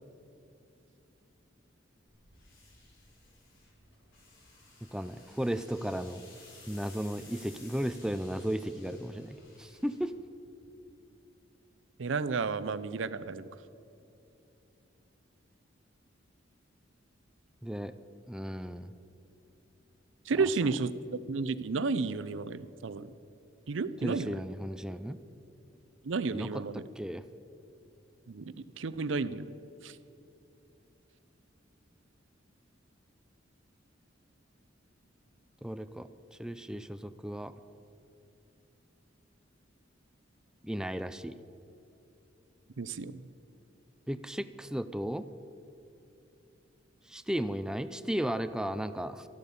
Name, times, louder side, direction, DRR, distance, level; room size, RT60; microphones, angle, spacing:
sound 1, 2.1-10.7, left 3 dB, 85° left, 3.9 m, -56 dB
voice 1, 4.9-6.2 6.7-10.1 17.6-17.9 18.3-18.9 24.0-25.2 26.3-26.6 27.0-27.2 35.6-36.1 36.4-37.5 40.6-41.4 44.1-45.3 47.1-49.2, equal, 5° right, 11 dB, 0.4 m, -35 dB
voice 2, 12.0-13.5 20.3-20.9 21.3-23.1 23.7-24.4 26.0-26.9 28.3-29.5 29.8-30.0 42.8-43.2, right 4 dB, 70° right, 15 dB, 0.6 m, -32 dB
13.0 x 12.0 x 7.0 m, 2.8 s
head